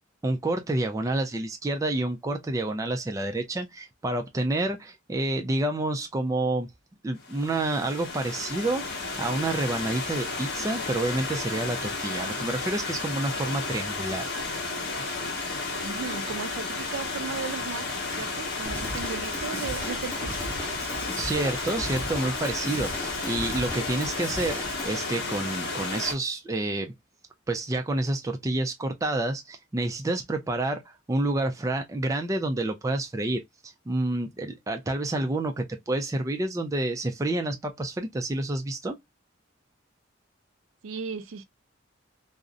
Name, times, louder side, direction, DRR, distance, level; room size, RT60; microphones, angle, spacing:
voice 1, 0.2-6.7 7.0-8.9 9.2-14.3 21.2-24.6 24.8-26.9 27.5-30.8 31.1-39.0, right 2 dB, 15° right, 0.3 m, -29 dB
Stream / Liquid, 7.2-26.1, left 3 dB, 55° left, 0.8 m, -33 dB
voice 2, 15.8-20.6 40.8-41.4, right 5 dB, 80° right, 0.4 m, -36 dB
Drum kit / Drum, 18.6-24.9, equal, 10° left, 0.8 m, -37 dB
2.5 x 2.0 x 2.5 m
head